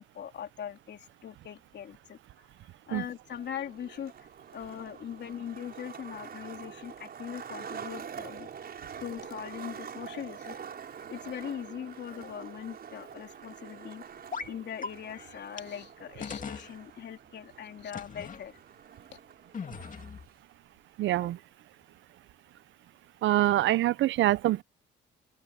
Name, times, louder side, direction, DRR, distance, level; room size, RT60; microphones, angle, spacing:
voice 1, 0.0-2.2 2.9-4.3 4.5-8.5 9.0-18.6, left 9 dB, 60° left, 3.1 m, -41 dB
Skateboard, 3.2-20.2, right 7 dB, 50° right, 6.2 m, -46 dB
sound 1, 14.3-14.5 14.8-14.9 15.6-15.7 16.2-16.7 17.9-18.4 19.5-20.3, left 5 dB, 40° left, 2.4 m, -38 dB
voice 2, 21.0-21.4 23.2-24.6, right 15 dB, 70° right, 0.5 m, -25 dB
open air
cardioid pair, 90°, 20 cm